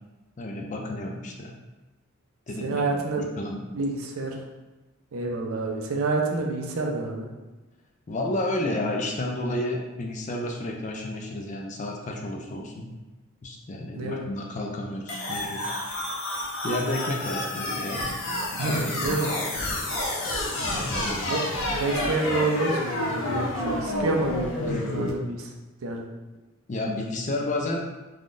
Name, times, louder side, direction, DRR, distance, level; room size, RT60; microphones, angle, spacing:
voice 1, 0.4-1.5 2.5-2.8 3.1-3.6 8.1-12.9 13.4-15.7 16.6-18.1 18.5-19.3 20.7-21.3 24.6-24.8 26.7-27.8, left 1 dB, 35° left, 0 dB, 0.4 m, -31 dB
voice 2, 2.6-3.2 3.7-4.4 5.1-7.3 13.9-14.2 18.6-19.3 21.3-21.4 21.7-25.5 25.8-26.0, right 3 dB, 80° right, 1 dB, 0.5 m, -28 dB
sound 1, 15.1-25.1, left 1 dB, 70° left, 0.7 m, -29 dB
3.5 x 2.2 x 2.5 m, 1.1 s
head